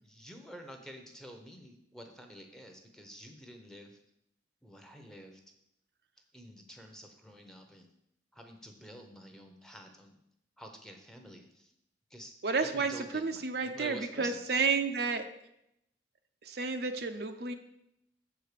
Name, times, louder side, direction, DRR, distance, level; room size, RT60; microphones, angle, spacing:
voice 1, 0.0-4.0 4.6-5.4 6.3-7.9 8.3-10.2 10.6-11.7 12.1-12.3 12.6-14.4, equal, 5° left, 4 dB, 0.8 m, -49 dB
voice 2, 12.4-15.2 16.4-17.5, right 4 dB, 60° right, 6 dB, 0.6 m, -31 dB
7.6 x 4.7 x 6.7 m, 0.79 s
head